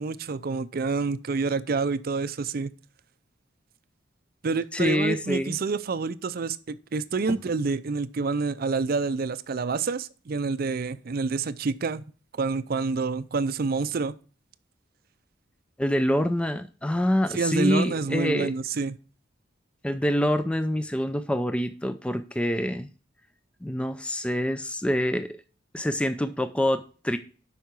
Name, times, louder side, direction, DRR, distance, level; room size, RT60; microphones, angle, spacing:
voice 1, 0.0-2.7 4.4-14.2 17.3-19.0, right 4 dB, 50° right, 0.5 m, -28 dB
voice 2, 4.7-5.6 15.8-18.5 19.8-22.9 23.6-25.4 25.7-27.2, left 1 dB, 5° left, 0.4 m, -26 dB
8.2 x 5.7 x 4.6 m
head